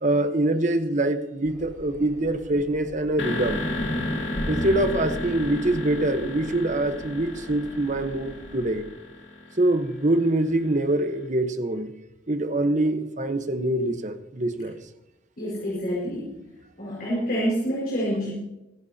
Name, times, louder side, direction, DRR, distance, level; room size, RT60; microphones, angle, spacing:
voice 1, 0.0-3.6 4.5-8.8 9.6-11.9 12.3-14.8, right 1 dB, 40° right, 8 dB, 1.1 m, -24 dB
Engine, 1.4-8.7, equal, 25° right, 4.5 m, -47 dB
sound 1, 3.2-11.0, left 2 dB, 70° left, 2.4 m, -35 dB
sound 2, 3.4-7.7, equal, 35° left, 1.3 m, -33 dB
voice 2, 15.4-16.4 16.8-18.3, equal, 50° left, -6 dB, 5.1 m, -27 dB
24.5 x 11.5 x 2.9 m, 0.92 s
head